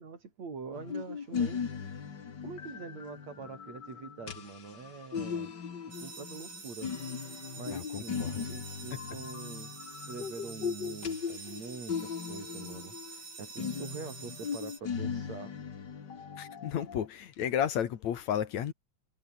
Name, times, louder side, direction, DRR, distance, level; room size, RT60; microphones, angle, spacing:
voice 1, 0.0-1.7 2.4-5.5 6.0-6.9 7.5-15.5, right 5 dB, 50° right, 5.5 m, -44 dB
sound 1, 0.7-13.2 13.5-17.1, left 6 dB, 40° left, 2.0 m, -38 dB
sound 2, 5.9-14.8, right 4 dB, 85° right, 9.7 m, -47 dB
voice 2, 7.7-8.5 16.4-18.7, left 9 dB, 60° left, 2.6 m, -33 dB
omnidirectional pair, 4.0 m